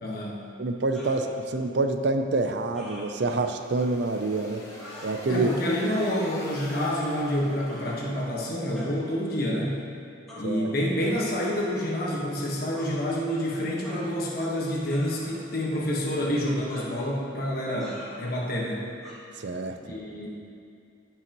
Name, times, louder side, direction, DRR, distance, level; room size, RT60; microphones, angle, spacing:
voice 1, 0.0-0.4 5.3-9.8 10.4-18.8 19.8-20.3, equal, 50° left, -3 dB, 1.4 m, -28 dB
voice 2, 0.6-4.6 5.0-5.5 10.4-10.7 19.4-19.8, right 3 dB, 60° right, 6 dB, 0.5 m, -27 dB
sound 1, 0.9-1.2 2.7-3.1 3.7-3.9 4.8-5.1 5.9-6.2 6.7-7.3 7.7-8.1 8.8-9.0 10.3-10.5 11.4-11.7 12.8-13.0 13.8-14.4 14.9-15.5 16.7-17.0 17.8-18.2 19.0-19.2, left 1 dB, ahead, 1.7 m, -44 dB
sound 2, 3.2-8.8, left 1 dB, 15° left, 1.3 m, -45 dB
14.5 x 5.6 x 3.0 m, 2.4 s
head